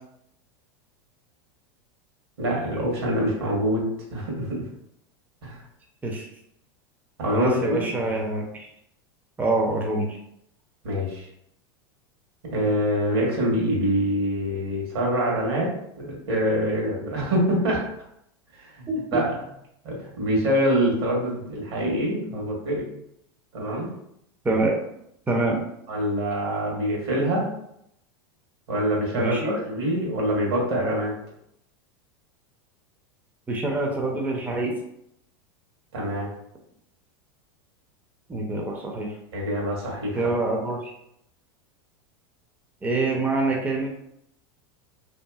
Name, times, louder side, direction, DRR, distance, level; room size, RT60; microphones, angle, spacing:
voice 1, 2.4-3.9 4.1-4.7 5.4-5.6 7.2-7.9 10.8-11.3 12.5-17.8 18.5-19.4 19.8-22.8 23.5-23.9 25.9-27.5 28.7-31.1 35.9-36.3 39.3-40.3, equal, 80° right, -2 dB, 1.2 m, -25 dB
voice 2, 7.3-8.7 9.4-10.1 18.9-19.2 24.4-24.8 25.3-25.6 29.1-29.6 33.5-34.8 38.3-39.1 40.1-40.9 42.8-43.9, right 2 dB, 15° right, 0 dB, 0.5 m, -25 dB
2.7 x 2.5 x 2.3 m, 0.76 s
hypercardioid pair, 105°, 13 cm